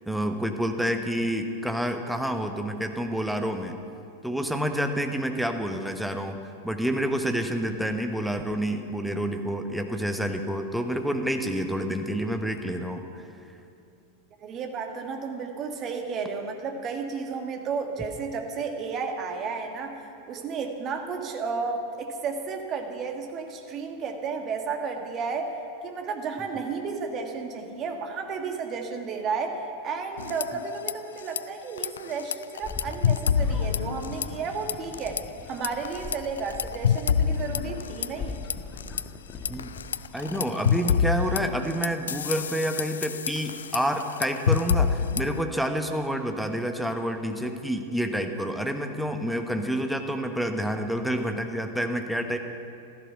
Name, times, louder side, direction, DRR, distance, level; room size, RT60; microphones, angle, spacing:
voice 1, 0.1-3.8 4.2-6.4 6.6-13.3 39.5-39.7 40.1-52.4, equal, ahead, 5 dB, 1.2 m, -28 dB
voice 2, 14.4-20.0 20.3-25.6 25.8-38.4, right 5 dB, 30° right, 4 dB, 1.8 m, -32 dB
sound 1, 30.2-30.9 31.2-31.4 31.8-34.4 34.7-35.2 35.6-39.0 39.5-45.4, left 7 dB, 65° left, 0.3 m, -27 dB
sound 2, 32.6-40.4, left 4 dB, 25° left, 1.2 m, -39 dB
15.5 x 13.5 x 5.9 m, 2.6 s
figure-of-eight pair, 90°, 0 cm